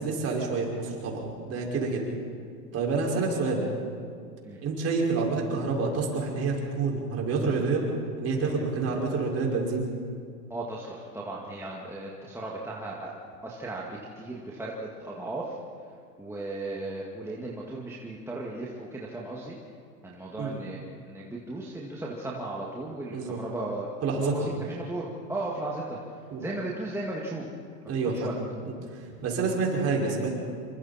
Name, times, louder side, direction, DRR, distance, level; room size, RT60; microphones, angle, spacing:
voice 1, 0.0-2.0 2.7-3.6 4.6-7.8 8.2-9.9 20.4-20.6 23.1-23.4 24.0-24.5 26.3-26.5 27.9-28.3 28.6-30.3, right 4 dB, 30° right, -1 dB, 5.6 m, -28 dB
voice 2, 10.5-13.1 13.4-15.6 16.2-19.6 20.0-26.0 26.4-27.5 28.1-28.3, right 2 dB, 5° right, -4 dB, 2.1 m, -36 dB
27.0 x 24.0 x 4.4 m, 2.2 s
hypercardioid pair, 120°, 49 cm